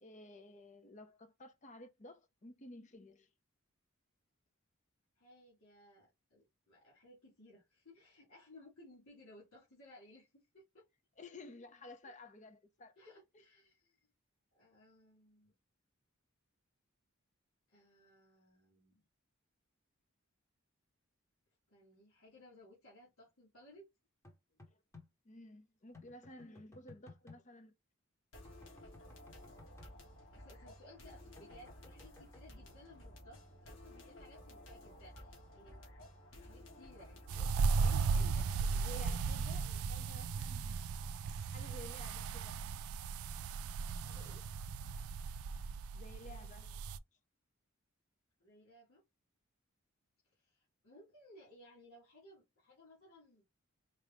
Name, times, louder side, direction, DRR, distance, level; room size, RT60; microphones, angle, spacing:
voice 1, 0.0-3.3 11.2-13.0 24.7-24.8 25.2-27.7 36.4-36.5 38.8-41.1 41.5-42.6 45.9-46.8, left 1 dB, 35° left, 0.7 m, -54 dB
voice 2, 5.2-10.9 12.0-12.1 13.0-14.0 14.5-15.5 17.7-19.0 21.7-23.9 30.3-35.8 36.4-39.3 39.6-39.8 43.9-44.5 48.4-49.0 50.2-53.5, left 1 dB, 80° left, 2.0 m, -60 dB
sound 1, 24.2-25.1 25.9-27.4 28.4-29.9 31.4-32.4, left 3 dB, 15° left, 0.9 m, -57 dB
sound 2, 28.3-39.0, left 1 dB, 60° left, 1.7 m, -55 dB
sound 3, 37.3-47.0, right 5 dB, 90° right, 0.3 m, -36 dB
4.5 x 2.4 x 3.4 m
head